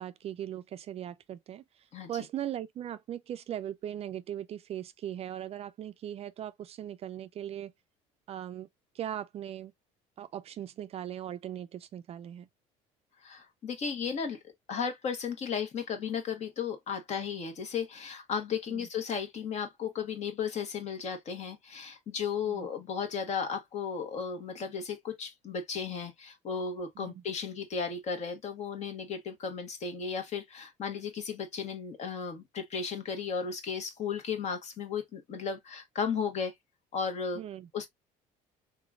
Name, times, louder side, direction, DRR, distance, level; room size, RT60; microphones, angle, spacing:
voice 1, 0.0-7.7 8.3-8.7 8.9-9.7 10.2-12.5 18.7-18.9 22.5-22.7 27.0-27.2 37.3-37.7, right 11 dB, 40° right, 0.4 m, -39 dB
voice 2, 13.2-14.4 14.7-36.5 36.9-37.4 37.7-37.9, left 6 dB, 50° left, 1.3 m, -35 dB
3.7 x 3.0 x 2.4 m
cardioid pair, 105°, 15 cm